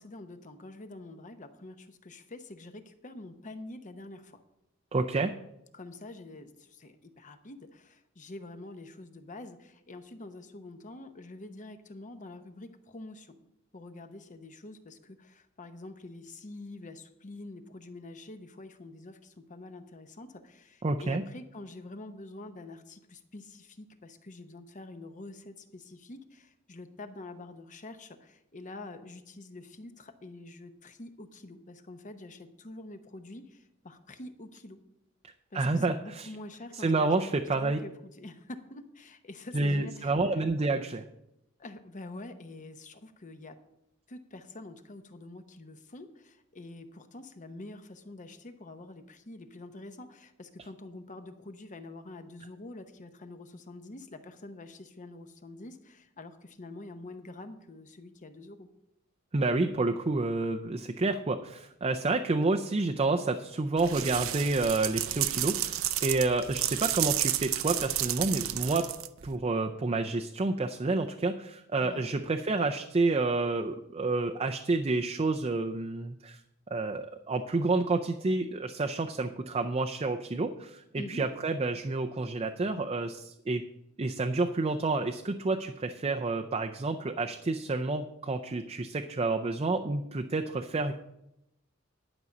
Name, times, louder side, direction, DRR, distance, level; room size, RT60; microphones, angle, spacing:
voice 1, 0.0-4.4 5.7-13.4 13.7-34.8 35.5-37.2 37.5-40.2 41.6-43.6 44.1-58.7 71.8-72.1 81.0-81.2, left 2 dB, 40° left, 8 dB, 0.9 m, -46 dB
voice 2, 4.9-5.3 20.8-21.2 35.5-36.3 36.8-37.8 39.5-41.0 59.3-68.8 69.2-76.4 76.7-83.6 84.0-90.9, right 3 dB, 30° right, 4 dB, 0.5 m, -29 dB
sound 1, 63.8-69.3, right 13 dB, 85° right, 0.6 m, -31 dB
11.0 x 5.3 x 7.1 m, 0.85 s
head